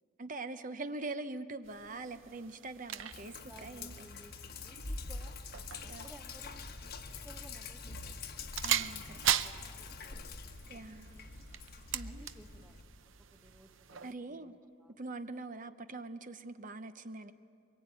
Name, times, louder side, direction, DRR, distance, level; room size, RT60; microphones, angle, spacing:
voice 1, 0.2-4.1 5.9-6.1 8.6-9.2 10.7-11.1 11.9-12.2 14.0-14.5 15.0-17.3, right 2 dB, 40° right, 10 dB, 0.8 m, -43 dB
sound 1, 1.6-14.1, right 10 dB, 70° right, 0.7 m, -40 dB
Sink (filling or washing), 3.1-12.8, left 4 dB, 50° left, 1.2 m, -46 dB
voice 2, 3.2-5.4 5.8-6.6 7.0-8.2 9.1-11.5 12.0-12.9 13.2-15.0, right 1 dB, 5° right, 7 dB, 0.8 m, -58 dB
sound 2, 5.8-13.7, left 1 dB, 15° left, 1.4 m, -54 dB
24.0 x 22.5 x 9.0 m, 2.4 s
head